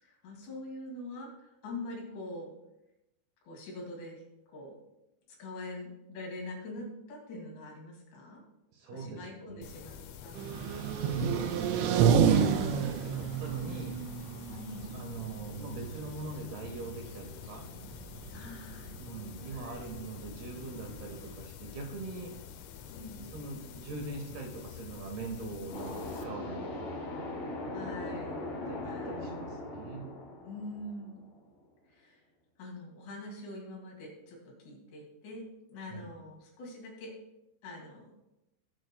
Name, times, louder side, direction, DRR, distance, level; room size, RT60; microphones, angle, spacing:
voice 1, 0.0-2.5 3.4-4.2 4.5-4.8 5.3-8.4 8.9-9.9 10.2-10.9 12.6-12.8 14.5-15.0 18.3-18.9 19.5-19.9 22.9-23.2 27.7-28.5 28.8-29.2 30.4-31.2 31.9-32.2 32.6-37.1 37.6-38.1, left 2 dB, 70° left, -1 dB, 4.5 m, -44 dB
voice 2, 8.7-9.7 11.1-14.0 14.9-17.6 19.0-22.4 23.1-27.0 28.7-30.1 35.9-36.1, right 3 dB, 70° right, 2 dB, 3.0 m, -42 dB
sound 1, 9.6-26.2, left 8 dB, 85° left, 3.1 m, -47 dB
sound 2, 10.3-21.3, right 7 dB, 90° right, 3.0 m, -31 dB
sound 3, 25.7-31.4, left 2 dB, 50° left, 4.1 m, -39 dB
20.0 x 8.0 x 2.2 m, 0.92 s
omnidirectional pair, 5.3 m